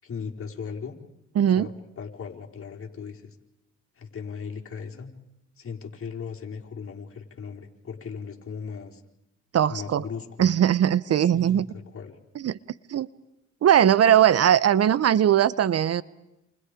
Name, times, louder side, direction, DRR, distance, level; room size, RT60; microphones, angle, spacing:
voice 1, 0.0-1.0 1.5-3.3 4.0-5.1 5.6-9.0 9.7-10.5 11.2-12.2, left 6 dB, 45° left, 1 dB, 4.6 m, -38 dB
voice 2, 1.4-1.7 9.5-10.0 10.4-11.7 12.4-12.6 12.9-13.1 13.6-16.0, right 10 dB, 55° right, 20 dB, 0.9 m, -20 dB
29.5 x 28.5 x 5.1 m, 0.89 s
cardioid pair, 90°, 30 cm